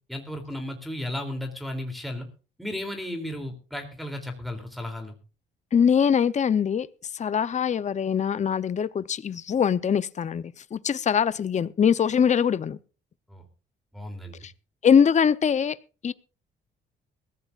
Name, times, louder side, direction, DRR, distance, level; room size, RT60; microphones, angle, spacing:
voice 1, 0.1-2.3 2.6-5.1 13.3-13.4 13.9-14.4, left 1 dB, ahead, 2.9 m, -34 dB
voice 2, 5.7-6.9 7.1-12.8 14.8-15.8 16.0-16.1, left 7 dB, 35° left, 0.7 m, -22 dB
22.0 x 15.0 x 2.4 m
cardioid pair, 90°, 20 cm